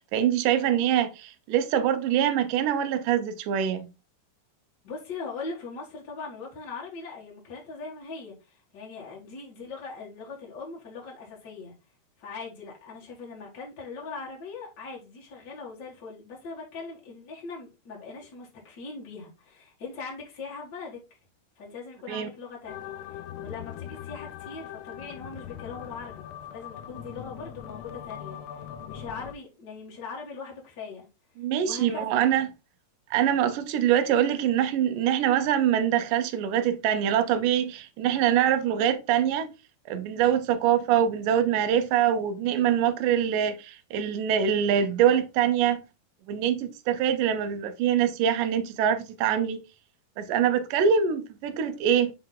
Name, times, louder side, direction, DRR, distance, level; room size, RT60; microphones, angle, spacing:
voice 1, 0.1-3.9 22.1-22.3 31.4-32.5 33.1-39.5 39.9-45.8 46.3-49.6 50.2-52.1, right 9 dB, 80° right, 2.0 m, -24 dB
voice 2, 4.8-11.7 12.2-21.0 21.6-31.1 31.6-32.2, left 4 dB, 50° left, 1.2 m, -40 dB
sound 1, 22.7-29.3, left 10 dB, 85° left, 2.6 m, -41 dB
7.7 x 3.3 x 3.8 m
omnidirectional pair, 4.8 m